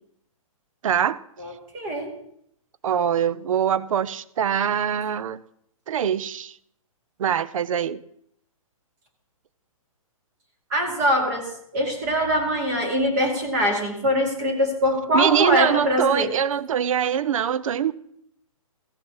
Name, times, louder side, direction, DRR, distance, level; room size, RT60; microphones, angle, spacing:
voice 1, 0.8-1.2 2.8-5.4 5.9-6.5 7.2-8.0 15.1-17.9, right 9 dB, 65° right, 18 dB, 0.5 m, -23 dB
voice 2, 1.4-2.1 10.7-16.3, equal, 30° right, 3 dB, 2.3 m, -23 dB
15.5 x 5.9 x 4.7 m, 0.72 s
hypercardioid pair, 160°, 18 cm